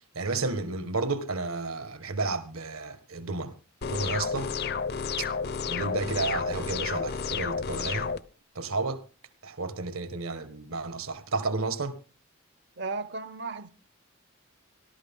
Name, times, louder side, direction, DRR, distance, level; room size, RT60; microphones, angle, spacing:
voice 1, 0.1-3.5 3.9-4.5 5.7-8.1 8.5-9.0 9.4-11.9, right 3 dB, 80° right, 1.7 m, -31 dB
sound 1, 3.8-8.2, left 6 dB, 50° left, 0.6 m, -31 dB
voice 2, 12.8-13.7, right 3 dB, 55° right, 0.7 m, -35 dB
18.5 x 12.0 x 3.8 m
head